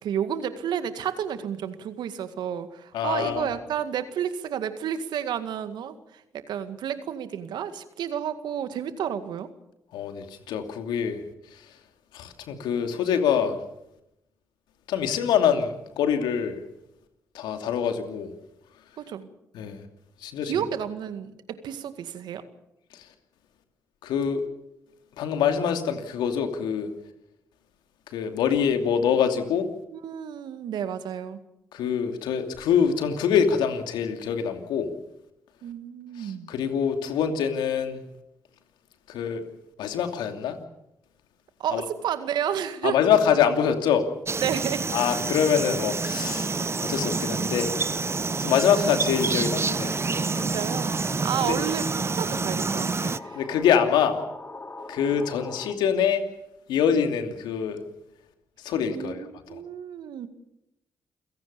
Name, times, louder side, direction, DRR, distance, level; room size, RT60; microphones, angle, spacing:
voice 1, 0.0-9.5 19.0-19.3 20.4-22.4 29.9-31.4 35.6-36.5 41.6-43.0 44.4-44.9 46.5-46.7 48.8-48.9 50.3-53.4 58.9-60.3, right 9 dB, 70° right, 10 dB, 2.0 m, -31 dB
voice 2, 2.9-3.5 9.9-11.2 11.5-11.6 12.1-13.6 14.9-16.6 17.3-18.3 19.5-19.8 20.2-20.6 22.9-23.0 24.0-24.4 25.2-26.9 28.1-29.7 31.7-34.9 36.2-38.0 39.1-39.4 39.8-40.6 41.7-41.8 42.8-44.0 44.9-46.5 46.8-47.7 48.4-50.0 51.4-51.6 53.0-53.1 53.3-54.2 54.9-56.2 56.7-57.8 58.6-59.2 59.5-59.6, left 8 dB, 80° left, 6 dB, 2.8 m, -25 dB
sound 1, 44.3-53.2, right 4 dB, 35° right, 1.0 m, -28 dB
sound 2, 46.2-55.7, left 2 dB, 30° left, 3.1 m, -41 dB
28.5 x 17.0 x 7.0 m, 0.85 s
hypercardioid pair, 50°, 8 cm